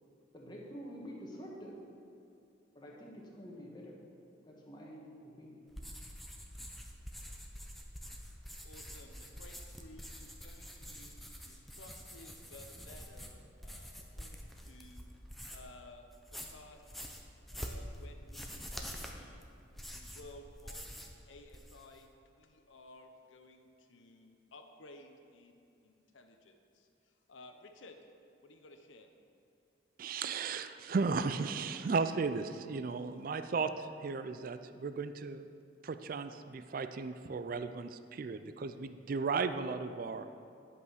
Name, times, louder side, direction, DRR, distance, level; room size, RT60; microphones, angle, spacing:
voice 1, 0.3-1.8 2.7-4.0 4.4-5.6, equal, 20° left, -3 dB, 1.4 m, -48 dB
sound 1, 5.7-15.8 16.1-21.2 21.4-22.0, equal, ahead, 0.6 m, -47 dB
voice 2, 8.6-15.1 15.5-17.1 17.5-19.4 19.9-20.9 21.3-28.0 28.4-29.1, left 2 dB, 80° left, 6 dB, 0.8 m, -56 dB
voice 3, 30.0-35.5 35.8-40.3, right 4 dB, 45° right, 10 dB, 0.4 m, -35 dB
11.0 x 5.5 x 6.4 m, 2.6 s
head